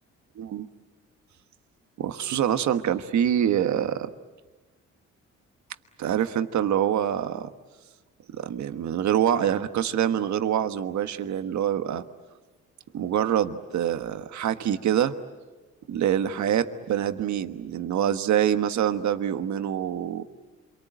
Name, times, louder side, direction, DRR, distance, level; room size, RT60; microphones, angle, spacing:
voice 1, 0.4-0.7 2.0-4.1 6.0-7.5 8.4-12.0 12.9-15.1 15.9-20.2, right 10 dB, 70° right, 9 dB, 1.4 m, -25 dB
27.5 x 23.5 x 9.1 m, 1.3 s
cardioid pair, 90°, 30 cm